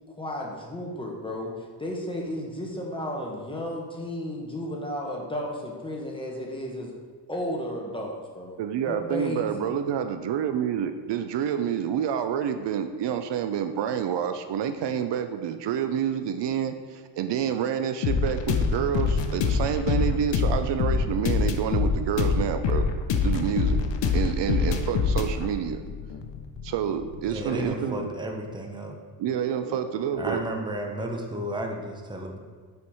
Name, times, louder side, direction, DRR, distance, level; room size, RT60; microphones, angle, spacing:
voice 1, 0.2-6.9 7.3-9.7 29.6-29.8, left 1 dB, 10° left, -2 dB, 1.2 m, -33 dB
voice 2, 8.6-22.9 23.2-23.8 24.1-25.8 26.6-28.1 29.2-30.4, right 8 dB, 70° right, 9 dB, 0.6 m, -28 dB
sound 1, 18.0-27.7, left 5 dB, 75° left, 0.8 m, -25 dB
voice 3, 27.3-29.0 30.2-32.4, right 1 dB, 10° right, 2 dB, 0.7 m, -33 dB
7.0 x 4.5 x 4.8 m, 1.5 s
wide cardioid pair, 145°, 44 cm